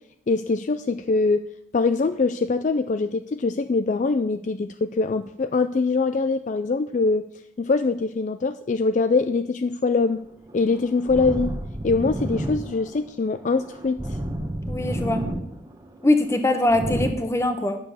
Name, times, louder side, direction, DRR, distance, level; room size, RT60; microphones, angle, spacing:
voice 1, 0.3-1.4 1.7-7.2 7.6-10.2 10.5-11.6 11.8-14.2, left 3 dB, 40° left, 10 dB, 0.4 m, -23 dB
sound 1, 10.0-17.1, right 1 dB, 20° right, 1.1 m, -31 dB
voice 2, 14.7-15.2 16.0-17.8, left 1 dB, 15° left, 7 dB, 1.1 m, -22 dB
10.0 x 6.8 x 7.0 m, 0.77 s
head